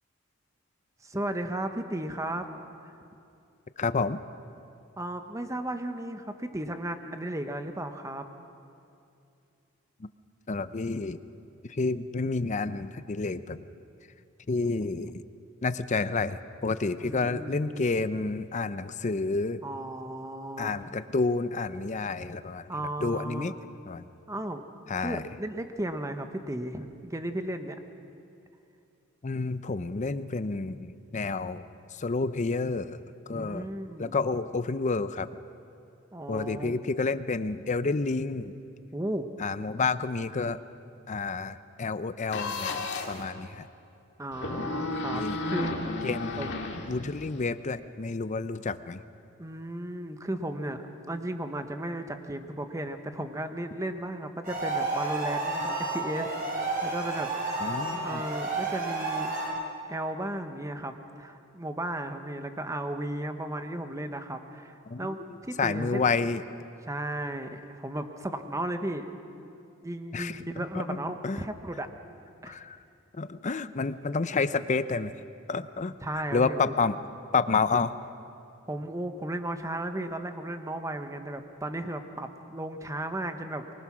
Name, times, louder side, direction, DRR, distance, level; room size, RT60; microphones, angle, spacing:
voice 1, 1.0-2.5 5.0-8.3 17.0-17.9 19.6-20.8 22.7-23.6 24.3-24.6 25.0-27.8 33.3-34.2 36.1-36.8 38.9-39.3 44.2-45.8 46.3-46.6 49.4-57.3 58.0-66.1 66.9-69.1 69.8-71.9 72.4-72.6 76.0-76.7 78.7-83.6, right 1 dB, 15° right, 7 dB, 1.1 m, -35 dB
voice 2, 3.8-4.2 10.5-11.2 11.6-13.6 14.5-15.2 15.6-19.6 20.6-22.7 23.0-23.5 23.9-24.0 24.9-25.2 29.2-31.7 32.0-33.0 33.3-33.7 34.0-35.3 36.3-38.5 39.4-40.6 41.1-43.7 45.1-45.4 46.0-46.5 46.9-49.0 57.6-58.2 64.9-65.1 65.6-66.4 70.1-71.4 72.5-72.8 73.1-75.1 75.5-76.0 76.3-77.0 77.3-77.9, left 4 dB, 35° left, 13 dB, 0.6 m, -29 dB
sound 1, 42.3-43.2 44.3-47.4, left 3 dB, 55° left, 2.0 m, -33 dB
sound 2, 54.4-59.5, right 3 dB, 40° right, 6.6 m, -31 dB
24.0 x 20.0 x 6.2 m, 2.6 s
head